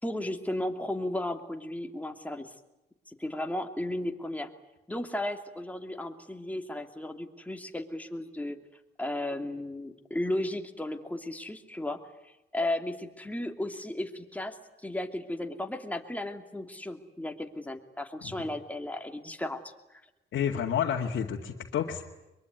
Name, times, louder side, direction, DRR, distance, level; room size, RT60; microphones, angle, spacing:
voice 1, 0.0-2.5 3.1-4.5 4.9-8.6 9.0-12.0 12.2-14.6 14.8-20.0, left 1 dB, 5° left, 4 dB, 2.7 m, -35 dB
voice 2, 20.3-22.0, left 8 dB, 70° left, -2 dB, 2.2 m, -30 dB
23.0 x 23.0 x 9.6 m, 0.97 s
cardioid pair, 90°, 20 cm